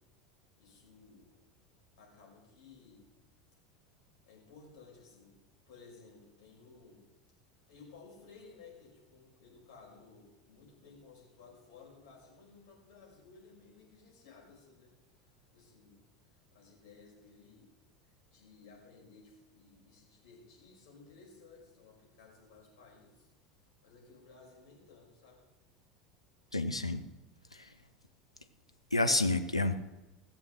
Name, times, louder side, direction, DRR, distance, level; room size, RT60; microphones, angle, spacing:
voice 1, 0.6-1.4 2.0-3.1 4.3-7.1 7.7-16.0 16.3-17.7 18.0-23.3 23.8-25.4, left 4 dB, 55° left, -2 dB, 5.5 m, -57 dB
voice 2, 26.5-27.0 27.5-27.7 28.9-29.8, left 2 dB, 85° left, 6 dB, 0.8 m, -29 dB
16.0 x 7.2 x 6.4 m, 1.0 s
figure-of-eight pair, 75°, 3 cm